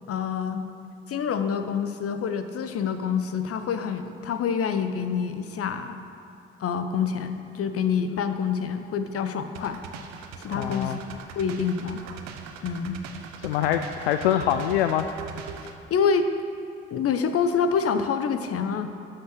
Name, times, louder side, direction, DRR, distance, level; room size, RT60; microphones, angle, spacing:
voice 1, 0.1-0.6 1.1-6.0 6.6-9.8 10.1-11.0 11.3-12.0 12.6-13.0 15.9-16.3 16.9-18.9, left 6 dB, 50° left, 9 dB, 0.9 m, -27 dB
sound 1, 9.5-15.8, right 6 dB, 65° right, 0.9 m, -40 dB
voice 2, 10.5-11.0 13.4-15.1, left 10 dB, 80° left, 8 dB, 0.5 m, -24 dB
12.0 x 5.8 x 6.2 m, 2.7 s
hypercardioid pair, 45°, 29 cm